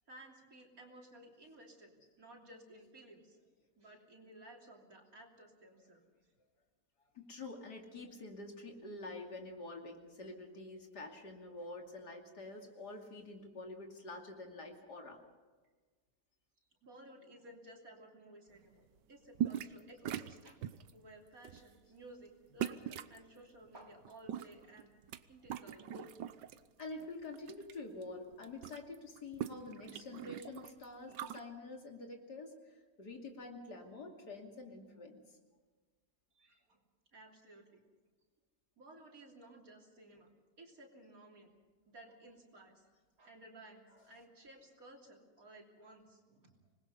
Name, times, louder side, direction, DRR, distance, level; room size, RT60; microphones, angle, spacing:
voice 1, 0.1-3.4 3.8-6.0 16.8-20.6 20.9-24.9 25.3-26.1 36.4-36.6 37.1-37.8 38.8-40.3 40.6-41.5 41.9-42.9 43.2-46.5, right 1 dB, 55° right, 1 dB, 3.5 m, -56 dB
voice 2, 7.1-15.2 26.8-35.2, left 2 dB, 70° left, 2 dB, 3.2 m, -47 dB
sound 1, 19.4-19.8 20.1-20.9 21.4-21.7 22.6-23.2 24.1-25.2 25.5-26.6 27.0-27.7 28.0-28.1 28.3-31.4, right 10 dB, 90° right, 1.5 m, -41 dB
26.5 x 20.5 x 5.5 m, 1.4 s
omnidirectional pair, 1.8 m